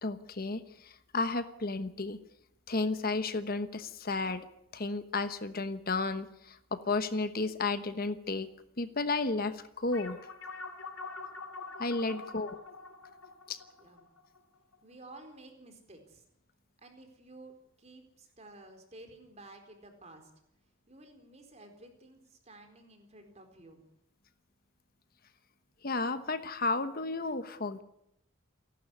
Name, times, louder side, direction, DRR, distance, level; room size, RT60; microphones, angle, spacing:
voice 1, 0.0-2.2 2.7-4.4 4.7-8.5 8.8-10.2 11.8-12.6 13.5-13.6 25.8-27.8, left 3 dB, 45° left, 11 dB, 1.1 m, -33 dB
sound 1, 9.9-14.8, left 3 dB, 80° left, 2.7 m, -45 dB
voice 2, 12.0-12.5 13.8-14.1 14.8-16.2 16.8-20.3 20.9-23.8, right 2 dB, 30° right, 6 dB, 4.3 m, -53 dB
28.5 x 12.0 x 9.8 m, 0.78 s
head